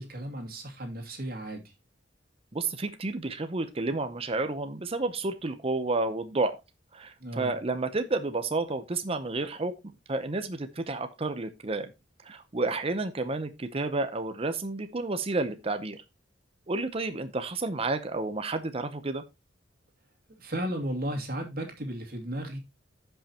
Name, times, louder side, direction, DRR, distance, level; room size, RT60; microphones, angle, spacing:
voice 1, 0.0-1.7 7.2-7.6 20.4-22.6, right 1 dB, 55° right, 2.5 m, -35 dB
voice 2, 2.5-6.6 6.9-9.7 10.1-11.9 12.2-16.0 16.7-19.2, right 3 dB, 30° right, 0.7 m, -31 dB
15.5 x 5.7 x 2.9 m
head